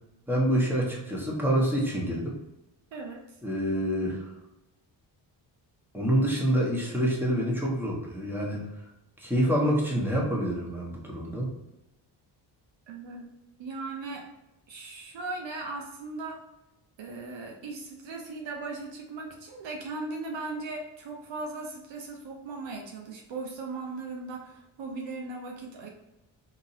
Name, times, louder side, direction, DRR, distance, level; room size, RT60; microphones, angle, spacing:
voice 1, 0.3-2.3 3.4-4.2 5.9-8.6 9.2-11.5, right 1 dB, 5° right, -3 dB, 1.3 m, -27 dB
voice 2, 2.9-3.2 12.9-13.3 13.6-14.2 14.7-16.4 17.0-25.9, right 3 dB, 65° right, 1 dB, 0.8 m, -38 dB
3.7 x 2.8 x 2.8 m, 0.92 s
supercardioid pair, 55°, 49 cm